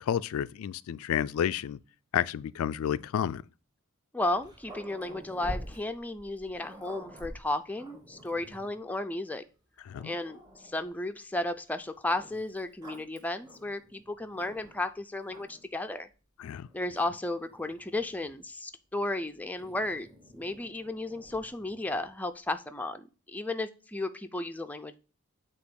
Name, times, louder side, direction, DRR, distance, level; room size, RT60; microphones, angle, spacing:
voice 1, 0.0-1.8 2.1-3.4 9.9-10.1 16.4-16.7, left 9 dB, 80° left, 0.3 m, -30 dB
voice 2, 4.1-9.4 10.0-10.4 10.6-16.1 16.7-24.9, left 2 dB, 10° left, 0.4 m, -34 dB
Growling, 4.2-8.8 9.5-9.6 9.9-11.0 12.1-14.9 15.2-15.8 16.6-18.5 19.6-22.1, equal, 20° right, 1.7 m, -48 dB
8.3 x 2.9 x 6.3 m
head